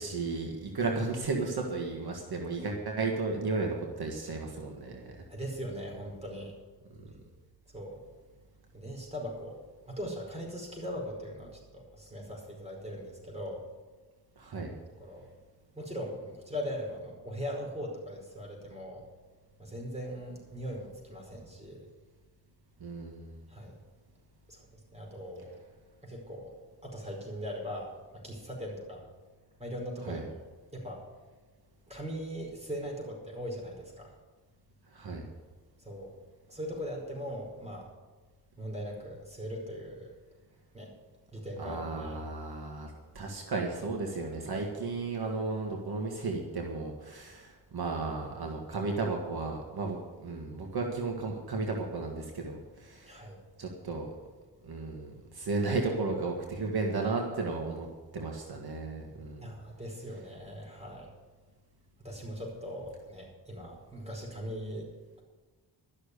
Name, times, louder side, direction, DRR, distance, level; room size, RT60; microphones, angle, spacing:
voice 1, 0.0-5.2 14.4-14.7 22.8-23.4 30.1-30.2 34.9-35.3 41.6-53.2 53.6-54.2 54.6-57.9 58.1-59.5, right 3 dB, 65° right, 1 dB, 1.8 m, -34 dB
voice 2, 5.3-6.5 7.7-8.0 8.7-9.6 9.9-13.6 15.0-15.3 15.7-19.1 19.6-21.9 23.5-23.8 24.5-25.6 26.0-29.1 29.6-30.3 30.7-31.0 31.9-34.1 35.8-36.2 36.5-37.9 38.6-40.1 40.7-40.9 41.3-42.2 53.0-53.4 59.4-61.1 62.0-65.2, equal, 15° right, -1 dB, 4.9 m, -40 dB
13.0 x 6.7 x 9.8 m, 1.3 s
cardioid pair, 85°, 40 cm